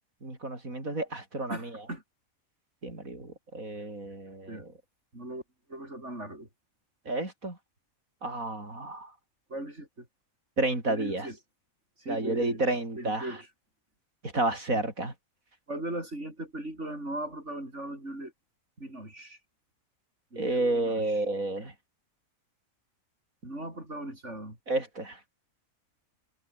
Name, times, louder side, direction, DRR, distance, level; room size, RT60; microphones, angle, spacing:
voice 1, 0.2-1.7 2.8-4.7 7.1-7.6 8.2-9.1 10.6-11.3 12.1-13.4 14.2-15.1 20.4-21.7 24.7-25.2, right 2 dB, 80° right, 6.4 m, -31 dB
voice 2, 1.5-2.0 4.5-4.6 5.1-5.4 5.7-6.5 9.5-10.1 10.9-11.4 12.0-12.6 13.0-13.5 15.7-18.3 18.8-19.4 20.3-21.1 23.4-24.6, right 1 dB, 55° right, 8.5 m, -38 dB
omnidirectional pair, 1.4 m